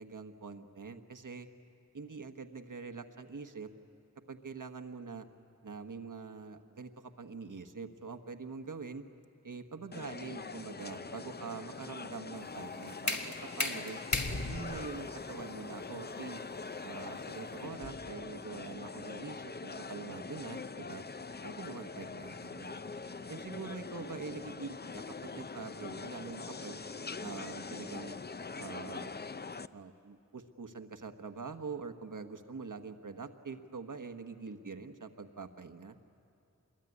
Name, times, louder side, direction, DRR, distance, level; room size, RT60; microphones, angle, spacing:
voice 1, 0.0-1.5 1.9-3.7 4.3-5.3 5.6-9.0 9.4-14.0 14.5-16.4 16.8-21.0 21.4-22.8 23.3-26.8 27.2-28.2 28.6-29.1 29.7-36.0, right 4 dB, 85° right, 7 dB, 1.2 m, -44 dB
sound 1, 9.9-29.7, left 4 dB, 35° left, 0.5 m, -43 dB
sound 2, 12.4-18.1, left 2 dB, 65° left, 1.7 m, -38 dB
26.0 x 21.5 x 9.7 m, 2.6 s
wide cardioid pair, 65°, 30 cm